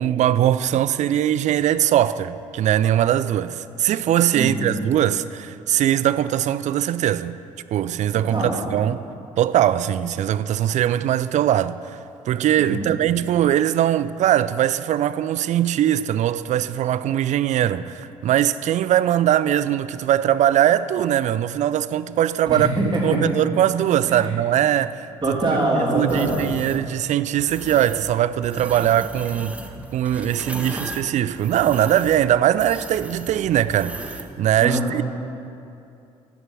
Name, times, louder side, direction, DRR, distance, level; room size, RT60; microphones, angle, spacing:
voice 1, 0.0-7.4 7.7-9.0 9.4-11.8 12.3-22.7 23.0-25.4 25.9-29.6 29.9-35.0, right 11 dB, 45° right, 0.4 m, -21 dB
voice 2, 4.3-4.7 8.1-8.6 12.6-12.9 22.4-23.2 24.1-24.3 25.2-26.5 34.6-34.8, right 2 dB, 25° right, 2.9 m, -23 dB
sound 1, 26.1-26.8 27.4-28.1 28.4-34.3, right 1 dB, 5° right, 0.8 m, -36 dB
9.3 x 7.7 x 6.1 m
figure-of-eight pair, 50°, 17 cm